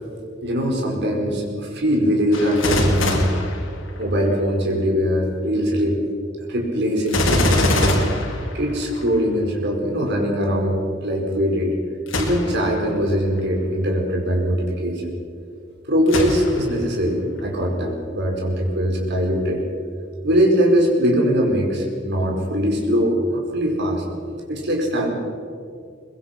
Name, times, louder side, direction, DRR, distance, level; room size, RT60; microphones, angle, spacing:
voice 1, 0.4-3.3 4.0-5.9 6.5-8.0 8.5-11.7 12.2-15.1 15.9-19.6 20.2-24.0 24.5-25.1, equal, 60° right, 1 dB, 4.8 m, -21 dB
Gunshot gunfire, 2.3-4.3 7.1-9.1 12.1-12.7 13.3-13.4 16.1-16.8 17.4-17.5, left 1 dB, 85° left, 3.7 m, -22 dB
23.0 x 21.0 x 6.0 m, 2.3 s
head